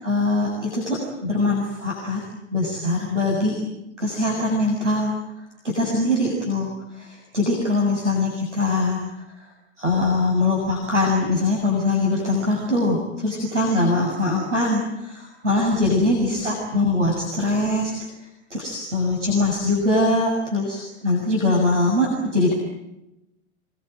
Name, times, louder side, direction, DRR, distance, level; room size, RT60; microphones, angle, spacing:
voice 1, 0.0-2.2 2.5-3.6 4.0-5.1 5.6-9.0 9.8-18.1 18.5-22.5, left 2 dB, 85° right, 0 dB, 7.5 m, -22 dB
27.5 x 23.0 x 9.2 m, 0.88 s
figure-of-eight pair, 95°, 36 cm